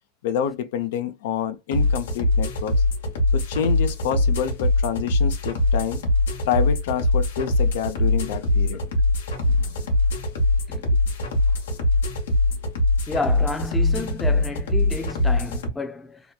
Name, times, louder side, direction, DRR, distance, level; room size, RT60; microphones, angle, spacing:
voice 1, 0.2-2.7 3.3-6.0 6.4-8.8, left 8 dB, 75° left, 0.4 m, -27 dB
sound 1, 1.7-15.7, left 2 dB, 90° left, 0.8 m, -22 dB
voice 2, 9.5-9.9 10.7-11.0 13.1-16.2, left 3 dB, 15° left, 0.5 m, -31 dB
2.8 x 2.3 x 2.2 m
hypercardioid pair, 115°, 0 cm